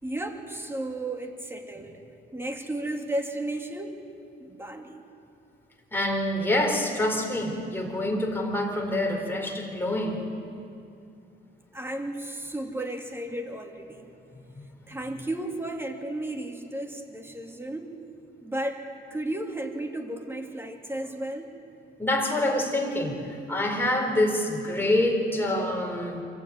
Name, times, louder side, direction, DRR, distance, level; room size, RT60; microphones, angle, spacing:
voice 1, 0.0-2.0 2.3-4.0 4.4-5.0 11.7-14.2 14.9-17.9 18.4-18.8 19.1-21.5, right 1 dB, 10° right, 3 dB, 2.5 m, -34 dB
voice 2, 5.9-10.2 14.5-14.7 22.0-26.2, left 1 dB, 10° left, 0 dB, 4.1 m, -26 dB
24.0 x 16.0 x 9.4 m, 2.6 s
cardioid pair, 90°, 20 cm